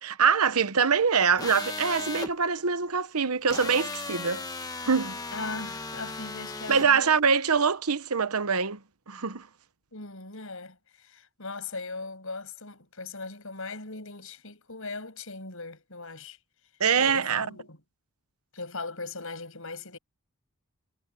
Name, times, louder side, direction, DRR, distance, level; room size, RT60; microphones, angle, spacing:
voice 1, 0.0-4.4 4.9-5.2 6.7-8.8 9.1-9.5 16.8-17.5, right 6 dB, 80° right, 1.0 m, -24 dB
sound 1, 1.4-2.3 3.5-6.9, left 3 dB, 15° left, 1.3 m, -36 dB
voice 2, 5.3-7.2 9.9-16.4 17.0-17.8 18.5-20.0, left 3 dB, 65° left, 7.8 m, -39 dB
head